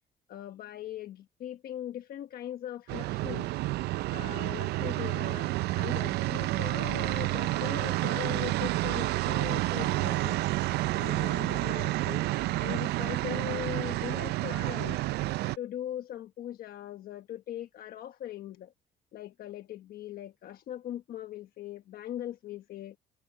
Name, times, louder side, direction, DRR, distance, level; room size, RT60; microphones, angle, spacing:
voice 1, 0.3-3.5 4.1-10.4 11.0-12.3 12.6-15.0 15.6-18.7 19.1-23.0, left 11 dB, 65° left, 1.3 m, -40 dB
sound 1, 2.9-15.6, right 18 dB, 75° right, 0.5 m, -30 dB
cardioid pair, 110°, 17 cm